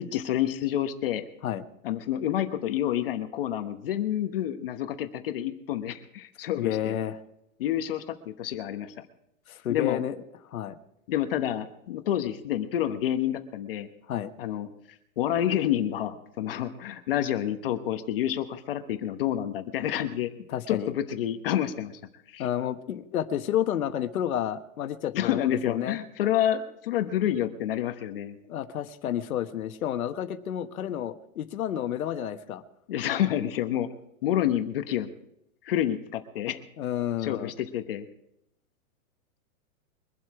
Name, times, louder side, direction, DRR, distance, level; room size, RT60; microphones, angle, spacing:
voice 1, 0.0-1.2 1.8-7.0 7.6-8.9 9.7-10.0 11.1-13.9 14.4-14.7 15.2-20.3 20.7-21.9 22.3-22.5 25.1-28.4 32.9-33.9 34.2-35.1 35.6-36.6 37.2-38.1, left 11 dB, 45° left, 8 dB, 1.1 m, -28 dB
voice 2, 6.6-7.2 9.5-10.1 10.5-10.8 14.1-14.3 20.5-20.9 22.4-26.0 28.5-32.6 36.8-37.5, left 10 dB, 90° left, 8 dB, 1.4 m, -30 dB
23.5 x 7.9 x 4.8 m, 0.78 s
supercardioid pair, 180°, 41 cm